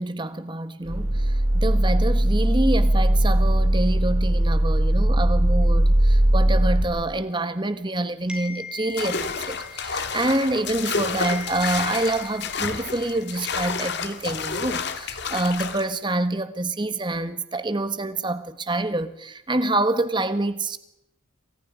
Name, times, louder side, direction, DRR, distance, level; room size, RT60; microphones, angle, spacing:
voice 1, 0.0-20.8, right 2 dB, 25° right, 1.5 m, -27 dB
sound 1, 0.9-6.8, right 1 dB, 80° right, 3.7 m, -19 dB
sound 2, 8.3-10.9 11.2-13.8, left 3 dB, 5° right, 3.4 m, -40 dB
sound 3, 9.0-15.9, left 5 dB, 55° left, 2.0 m, -30 dB
28.5 x 24.0 x 5.1 m
head